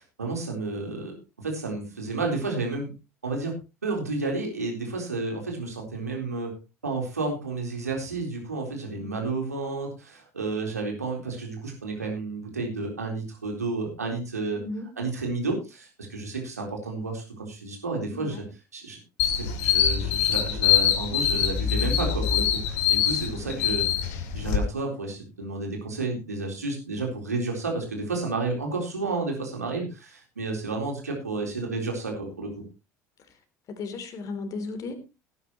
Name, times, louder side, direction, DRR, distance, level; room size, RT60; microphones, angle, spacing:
voice 1, 0.0-2.9 3.2-3.6 3.8-6.6 6.8-14.6 15.0-18.4 18.7-23.9 24.3-32.6, right 3 dB, 85° right, 1 dB, 3.9 m, -31 dB
voice 2, 14.5-14.9 18.1-18.4 23.4-23.7 33.7-34.9, left 3 dB, 45° left, 8 dB, 3.2 m, -36 dB
sound 1, 19.2-24.6, left 9 dB, 60° left, 2.3 m, -24 dB
18.0 x 9.7 x 3.0 m, 0.28 s
figure-of-eight pair, 65°, 8 cm